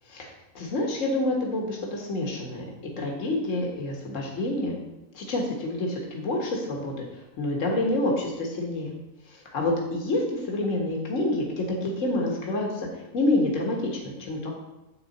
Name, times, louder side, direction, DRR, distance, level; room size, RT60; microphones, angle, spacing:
voice 1, 0.1-2.7 3.0-4.7 5.1-8.9 9.3-14.5, left 2 dB, 60° left, 0 dB, 1.9 m, -28 dB
10.5 x 7.9 x 4.2 m, 1.0 s
omnidirectional pair, 1.5 m